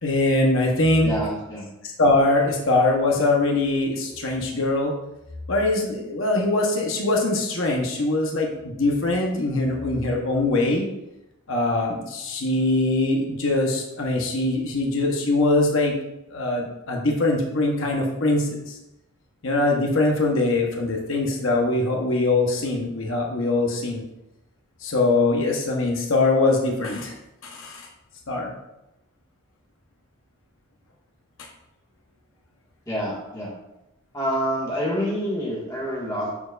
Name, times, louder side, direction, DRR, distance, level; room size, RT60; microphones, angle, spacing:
voice 1, 0.0-1.2 1.8-5.0 5.5-10.9 11.5-15.9 16.3-18.8 19.4-24.0 24.8-27.1 27.4-27.9 28.3-28.5 31.4-31.5, left 2 dB, 65° left, 0 dB, 0.9 m, -22 dB
voice 2, 1.0-1.6 32.9-33.5 34.1-36.5, equal, 15° left, -5 dB, 1.7 m, -27 dB
11.5 x 4.4 x 2.4 m, 0.91 s
head